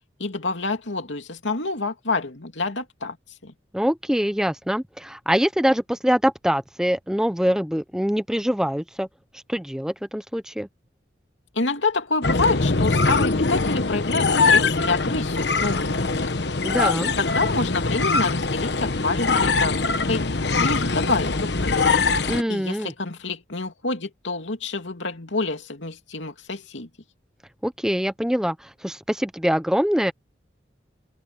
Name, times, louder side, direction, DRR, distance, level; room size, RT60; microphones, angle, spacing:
voice 1, 0.2-3.2 3.4-3.5 11.5-16.1 17.2-20.2 20.6-22.0 22.5-26.9, left 3 dB, 80° left, 2.8 m, -27 dB
voice 2, 3.7-9.1 9.3-10.7 16.6-17.1 22.3-22.9 27.6-30.1, equal, 5° right, 0.6 m, -24 dB
sound 1, 12.2-22.4, left 3 dB, 65° left, 1.1 m, -22 dB
open air
head